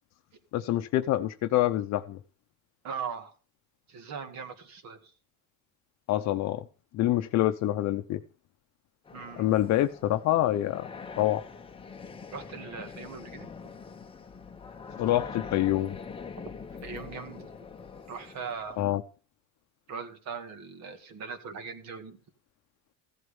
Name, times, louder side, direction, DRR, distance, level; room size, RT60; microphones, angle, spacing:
voice 1, 0.5-2.2 6.1-6.7 6.9-8.2 9.4-10.9 11.2-11.4 15.0-15.9 18.8-19.0, left 14 dB, 50° left, 0.8 m, -26 dB
voice 2, 2.8-3.3 3.9-5.1 9.1-9.5 12.3-13.5 16.8-17.5 18.1-18.8 19.9-22.2, right 6 dB, 50° right, 2.3 m, -40 dB
sound 1, 9.1-18.9, left 5 dB, 15° left, 0.9 m, -44 dB
15.5 x 7.9 x 5.4 m
cardioid pair, 145°, 35 cm